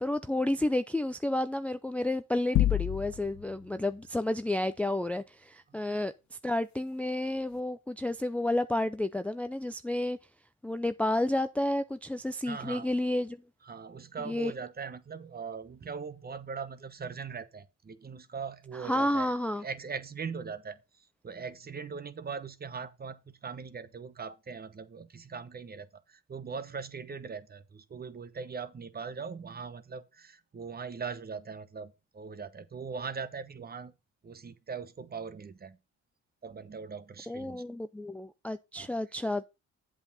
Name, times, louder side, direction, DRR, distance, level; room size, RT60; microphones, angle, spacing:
voice 1, 0.0-6.1 6.4-10.2 10.6-13.4 14.2-14.5 18.7-19.6 37.3-39.5, left 1 dB, 5° left, 0.4 m, -31 dB
sound 1, 2.5-3.5, left 14 dB, 70° left, 0.5 m, -27 dB
voice 2, 12.4-12.9 13.7-19.3 19.6-20.8 21.2-33.9 34.2-35.8 36.4-37.6 38.8-38.9, right 5 dB, 30° right, 0.9 m, -40 dB
8.0 x 7.3 x 4.0 m
cardioid pair, 90°, 30 cm